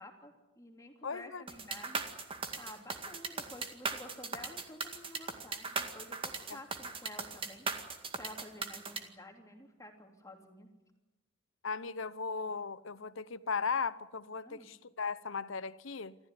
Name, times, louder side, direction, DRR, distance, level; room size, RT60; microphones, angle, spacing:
voice 1, 0.0-2.0 2.6-7.7 8.2-10.7 14.4-14.7, left 1 dB, 15° left, 3.1 m, -51 dB
voice 2, 1.0-1.4 6.5-6.6 11.6-16.2, left 5 dB, 80° left, 0.9 m, -37 dB
sound 1, 1.5-9.0, right 4 dB, 25° right, 2.0 m, -38 dB
28.0 x 14.5 x 9.8 m
head